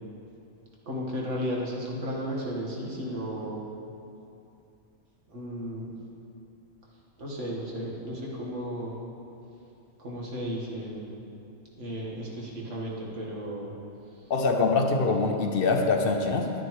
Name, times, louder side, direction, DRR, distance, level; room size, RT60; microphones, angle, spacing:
voice 1, 0.9-3.6 5.3-5.9 7.2-8.9 10.0-11.0 11.7-13.7, equal, 85° right, -4 dB, 1.9 m, -34 dB
voice 2, 14.3-16.5, left 3 dB, 55° left, 3 dB, 0.8 m, -24 dB
11.5 x 9.8 x 3.1 m, 2.7 s
omnidirectional pair, 1.2 m